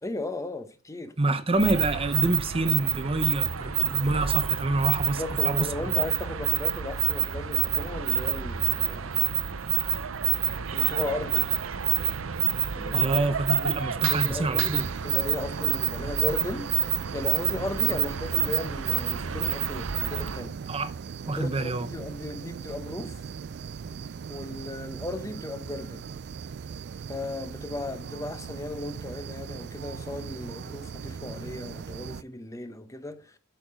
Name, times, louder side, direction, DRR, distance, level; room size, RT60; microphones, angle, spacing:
voice 1, 0.0-1.2 5.1-9.3 9.8-9.9 10.7-11.5 12.7-13.1 13.5-14.8 15.0-20.6 21.3-23.2 24.3-26.0 27.1-33.4, left 2 dB, 15° left, 0.9 m, -36 dB
voice 2, 1.2-5.7 12.9-14.9 20.7-20.9 21.3-21.9, right 2 dB, 30° right, 0.7 m, -27 dB
sound 1, 1.5-20.5, right 12 dB, 90° right, 0.7 m, -28 dB
sound 2, 14.8-32.2, right 6 dB, 55° right, 0.4 m, -39 dB
8.9 x 6.6 x 5.3 m
head